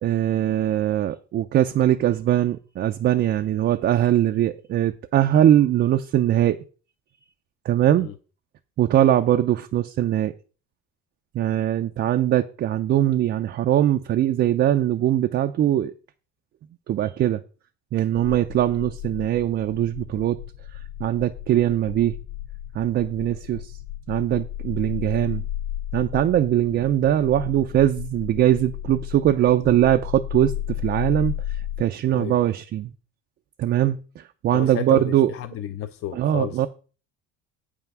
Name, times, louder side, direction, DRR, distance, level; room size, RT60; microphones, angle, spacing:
voice 1, 0.0-6.6 7.6-8.1 8.8-10.3 11.3-15.9 16.9-17.4 17.9-20.4 21.0-22.2 22.7-23.8 24.1-25.5 25.9-32.9 33.6-35.3 36.1-36.7, right 12 dB, 35° right, 0.4 m, -21 dB
sound 1, 18.1-31.8, left 12 dB, 90° left, 2.9 m, -34 dB
voice 2, 34.5-35.0 35.3-36.7, left 10 dB, 45° left, 0.5 m, -32 dB
8.4 x 5.6 x 5.9 m
cardioid pair, 160°, 31 cm